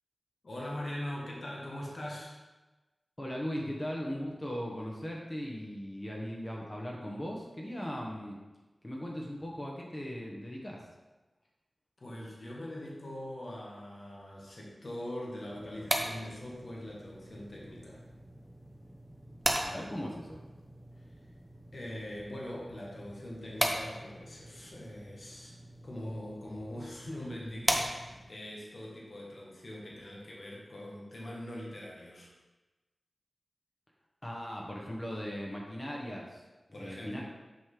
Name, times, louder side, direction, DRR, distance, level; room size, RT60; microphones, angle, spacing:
voice 1, 0.4-2.4 3.5-3.7 12.0-18.0 21.0-21.1 21.7-25.5 25.8-32.3 36.7-37.2, left 1 dB, 55° left, -4 dB, 1.7 m, -42 dB
voice 2, 3.2-8.4 8.8-10.8 19.6-20.4 34.2-36.4 36.7-37.2, equal, 20° left, -2 dB, 1.1 m, -38 dB
sound 1, 15.5-28.4, right 1 dB, 15° right, 0.9 m, -38 dB
6.4 x 6.0 x 3.8 m, 1.1 s
wide cardioid pair, 80°, 0 cm